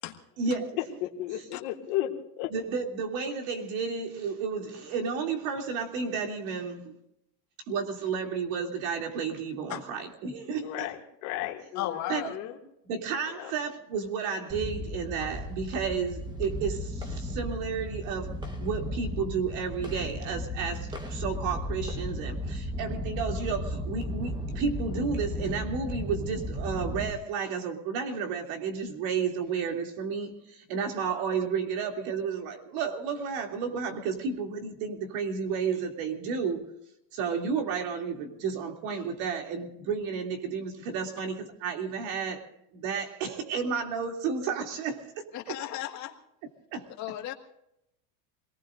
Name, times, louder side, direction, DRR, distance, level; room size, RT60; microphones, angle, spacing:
voice 1, 0.4-0.8 2.5-7.0 7.7-10.9 12.1-12.3 12.8-36.7 37.1-42.5 42.7-45.6 46.7-46.9, right 5 dB, 55° right, 3.0 m, -32 dB
voice 2, 1.0-2.1 2.4-2.5 10.6-12.6 13.4-13.5, left 14 dB, 60° left, 2.4 m, -34 dB
voice 3, 11.8-12.3 45.3-46.1 47.0-47.3, left 13 dB, 35° left, 1.9 m, -34 dB
sound 1, 14.5-27.1, equal, 10° right, 1.3 m, -35 dB
27.0 x 19.0 x 2.6 m
supercardioid pair, 155°, 47 cm